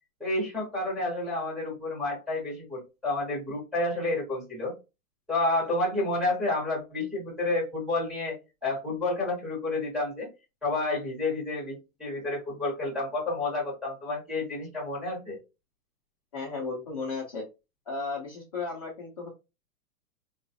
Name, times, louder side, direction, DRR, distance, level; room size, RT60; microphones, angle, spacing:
voice 1, 0.2-4.7 5.3-8.4 8.6-10.3 10.6-15.4, left 2 dB, ahead, -5 dB, 0.7 m, -30 dB
voice 2, 16.3-17.4 17.9-19.3, left 3 dB, 25° left, -4 dB, 0.4 m, -34 dB
3.7 x 2.3 x 2.6 m, 0.27 s
hypercardioid pair, 160°, 47 cm